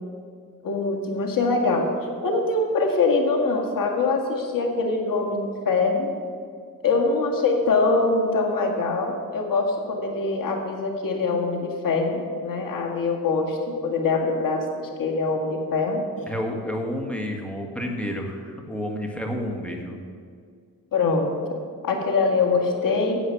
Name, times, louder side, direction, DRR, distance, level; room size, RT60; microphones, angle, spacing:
voice 1, 0.6-1.9 2.2-6.1 6.8-16.0 20.9-21.3 21.8-23.2, left 3 dB, 70° left, 1 dB, 2.0 m, -23 dB
voice 2, 16.3-20.0, equal, 5° left, 1 dB, 1.6 m, -30 dB
10.0 x 8.0 x 7.1 m, 2.1 s
cardioid pair, 110°, 34 cm